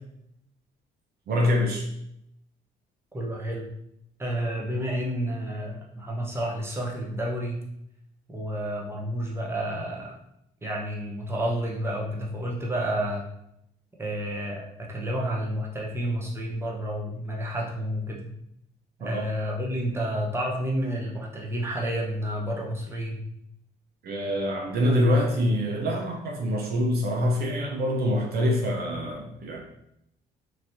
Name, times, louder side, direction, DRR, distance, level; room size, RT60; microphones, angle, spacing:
voice 1, 1.3-1.9 19.0-19.2 24.0-29.6, left 1 dB, 60° right, 0 dB, 0.7 m, -25 dB
voice 2, 3.1-3.7 4.2-7.6 8.3-10.1 10.6-13.2 14.0-18.3 19.0-23.2, equal, 15° right, -2 dB, 0.9 m, -30 dB
3.0 x 2.9 x 2.7 m, 0.77 s
supercardioid pair, 70°, 18 cm